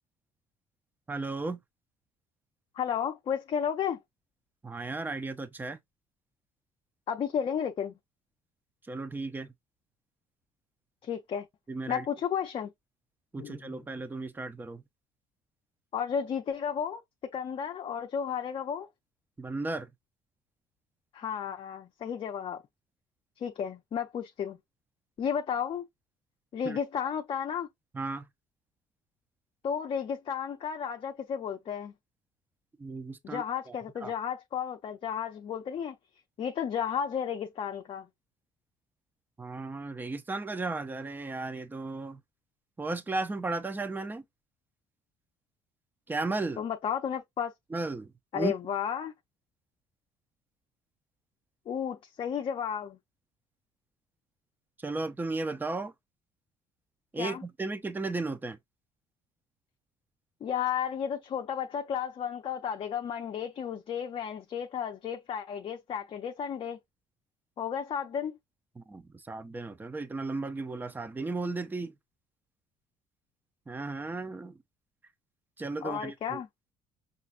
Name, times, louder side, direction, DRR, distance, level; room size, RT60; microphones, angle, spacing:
voice 1, 1.1-1.6 4.6-5.8 8.8-9.5 11.7-12.1 13.3-14.8 19.4-19.9 26.6-26.8 27.9-28.3 32.8-33.8 34.0-34.1 39.4-42.2 42.8-44.2 46.1-46.6 47.7-48.5 54.8-55.9 57.1-58.6 68.8-71.9 73.7-74.6 75.6-76.4, right 3 dB, 15° right, 0.6 m, -35 dB
voice 2, 2.7-4.0 7.1-7.9 11.0-11.5 11.9-12.7 13.4-13.6 15.9-17.0 17.3-18.9 21.1-22.6 23.4-24.6 25.2-25.8 26.5-27.7 29.6-31.9 33.2-36.0 36.4-38.1 46.6-47.5 48.3-49.1 51.7-53.0 57.2-57.4 60.4-66.8 67.6-68.4 75.8-76.5, left 8 dB, 40° left, 0.7 m, -33 dB
5.6 x 2.5 x 2.5 m
cardioid pair, 110°, 13 cm